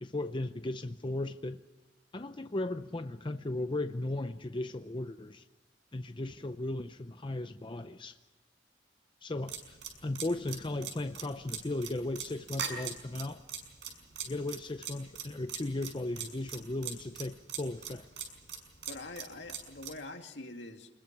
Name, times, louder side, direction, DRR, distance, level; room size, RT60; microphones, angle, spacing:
voice 1, 0.0-1.6 2.1-5.4 5.9-8.2 9.2-13.4 14.2-18.1, left 2 dB, 25° left, 9 dB, 0.6 m, -36 dB
sound 1, 9.5-20.0, right 8 dB, 70° right, 5.9 m, -40 dB
voice 2, 18.9-20.9, left 2 dB, 70° left, 4 dB, 2.4 m, -44 dB
27.0 x 21.0 x 6.0 m, 1.1 s
head